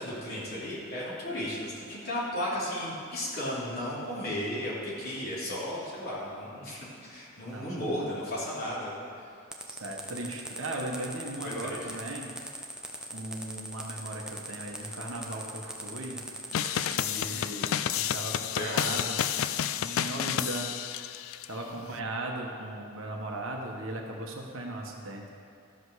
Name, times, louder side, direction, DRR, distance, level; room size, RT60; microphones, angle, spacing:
voice 1, 0.0-8.9 11.4-11.8 17.3-17.6 18.5-19.0 21.6-21.9, left 1 dB, 45° left, -7 dB, 2.8 m, -35 dB
sound 1, 9.5-17.1, right 1 dB, 5° right, 0.7 m, -41 dB
voice 2, 9.7-12.3 13.1-16.2 17.0-19.2 19.7-20.7 21.5-25.2, right 1 dB, 65° right, 0 dB, 1.3 m, -37 dB
sound 2, 16.5-21.5, left 9 dB, 70° left, 0.3 m, -30 dB
13.5 x 5.3 x 6.4 m, 2.6 s
head